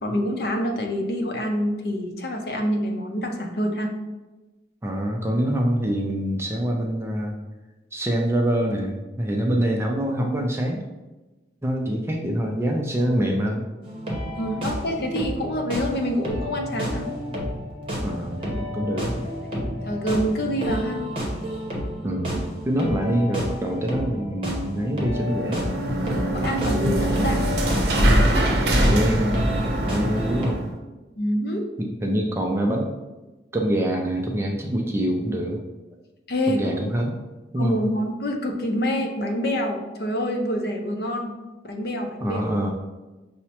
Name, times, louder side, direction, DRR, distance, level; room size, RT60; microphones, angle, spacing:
voice 1, 0.0-3.9 14.4-17.1 19.5-21.0 22.8-22.9 26.1-27.5 31.2-31.6 36.3-36.6 37.6-41.3 41.6-42.4, equal, 55° left, 3 dB, 0.5 m, -26 dB
voice 2, 4.8-7.3 7.9-10.8 11.6-13.6 18.0-19.2 22.0-25.6 27.2-27.4 28.9-29.3 29.9-30.6 31.8-32.9 33.5-35.6 36.5-37.1 37.5-37.8 42.2-42.7, right 1 dB, 15° right, 1 dB, 0.3 m, -25 dB
sound 1, 13.8-30.5, equal, 30° right, 0.8 m, -31 dB
sound 2, 25.1-30.7, right 1 dB, 65° right, 0.6 m, -22 dB
5.7 x 2.1 x 2.8 m, 1.1 s
head